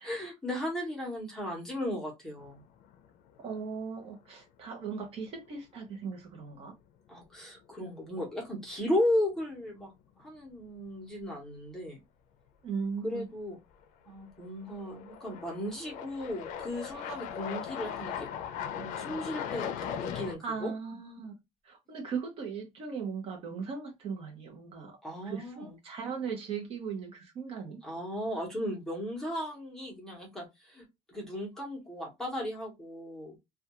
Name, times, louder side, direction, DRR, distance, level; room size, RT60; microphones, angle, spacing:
voice 1, 0.0-2.6 7.1-9.9 10.2-12.0 13.0-13.6 14.1-18.3 18.8-20.7 25.0-25.8 27.8-33.3, left 1 dB, 5° left, 0.7 m, -35 dB
sound 1, 2.4-3.0 3.4-3.5 6.4-6.5 7.8-8.1 8.4-8.5 13.8-13.9 14.7-20.4, left 8 dB, 80° left, 0.4 m, -38 dB
voice 2, 3.4-6.7 12.6-13.3 20.4-21.3 21.7-25.0 25.2-27.8, right 5 dB, 50° right, 0.7 m, -38 dB
2.3 x 2.2 x 2.8 m
cardioid pair, 175°, 13 cm